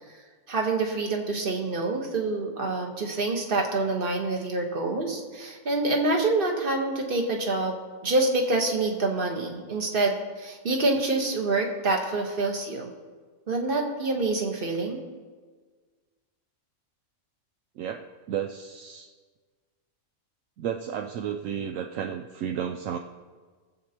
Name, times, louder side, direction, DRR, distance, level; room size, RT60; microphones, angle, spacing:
voice 1, 0.5-7.8 8.0-12.9 13.5-15.0, right 2 dB, 40° right, 2 dB, 1.4 m, -26 dB
voice 2, 17.8-19.1 20.6-23.0, right 8 dB, 75° right, 5 dB, 0.9 m, -32 dB
21.5 x 7.8 x 2.9 m, 1.5 s
omnidirectional pair, 1.4 m